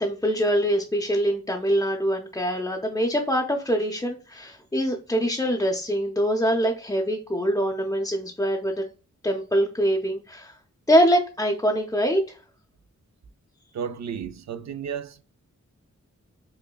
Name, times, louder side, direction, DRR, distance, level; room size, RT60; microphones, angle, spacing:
voice 1, 0.0-8.9 9.2-10.6 10.9-12.4, equal, 10° left, 0.5 m, -24 dB
voice 2, 13.7-15.2, right 7 dB, 65° right, 0.5 m, -33 dB
5.2 x 2.1 x 2.2 m
wide cardioid pair, 70°, 30 cm